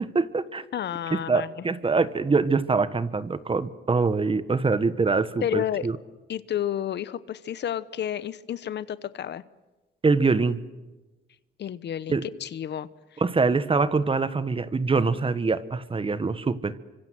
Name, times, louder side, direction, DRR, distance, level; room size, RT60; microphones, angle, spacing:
voice 1, 0.0-0.6 1.1-6.0 10.0-10.6 12.1-12.2 13.2-16.8, right 4 dB, 25° right, 14 dB, 1.4 m, -24 dB
voice 2, 0.7-1.5 5.4-5.9 6.3-9.4 11.6-13.2, left 10 dB, 60° left, 16 dB, 1.0 m, -31 dB
26.5 x 25.0 x 7.8 m, 1.1 s
cardioid pair, 90°, 20 cm